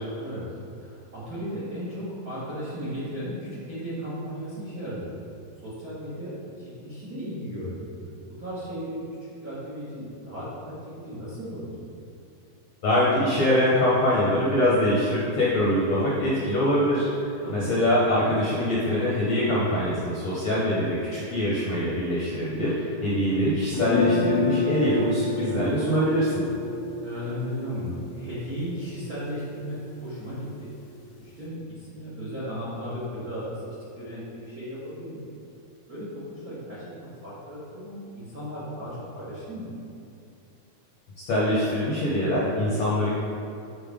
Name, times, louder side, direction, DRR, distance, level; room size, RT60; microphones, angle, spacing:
voice 1, 0.8-5.1 5.6-7.9 8.4-9.0 9.4-11.9 17.4-17.7 23.3-23.4 27.0-30.7 31.2-35.2 35.9-39.8, equal, 85° right, -10 dB, 0.8 m, -35 dB
voice 2, 12.8-26.5 41.3-43.1, left 1 dB, 70° left, -8 dB, 1.6 m, -23 dB
sound 1, 23.7-29.7, left 3 dB, 90° left, 2.6 m, -29 dB
9.2 x 4.2 x 3.6 m, 2.7 s
omnidirectional pair, 4.3 m